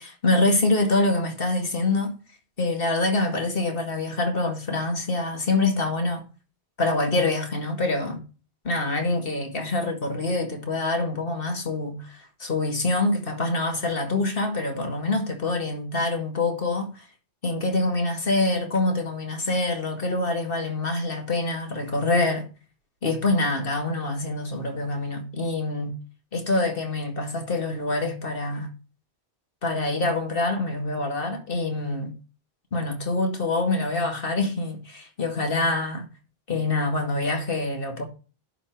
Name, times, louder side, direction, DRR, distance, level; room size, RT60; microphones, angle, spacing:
voice 1, 0.0-2.1 2.6-6.2 6.8-8.2 8.6-17.0 17.4-22.5 23.0-26.0 26.3-28.7 29.6-32.2 32.7-36.1 36.5-38.0, left 2 dB, 60° left, 2.4 m, -25 dB
11.5 x 6.2 x 4.5 m
omnidirectional pair, 1.1 m